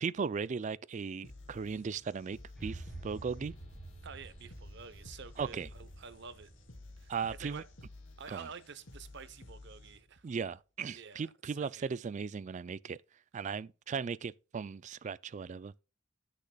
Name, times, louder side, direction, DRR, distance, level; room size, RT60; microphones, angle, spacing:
voice 1, 0.0-3.5 5.4-5.7 7.1-7.6 8.3-8.5 10.2-13.0 13.3-15.7, right 5 dB, 40° right, 0.4 m, -37 dB
sound 1, 1.2-10.2, left 2 dB, 85° left, 2.8 m, -53 dB
sound 2, 2.6-8.7, right 2 dB, ahead, 4.3 m, -50 dB
voice 2, 4.0-6.5 7.0-7.6 8.2-10.3 10.9-11.9, right 5 dB, 65° right, 0.9 m, -49 dB
15.0 x 6.6 x 2.3 m
head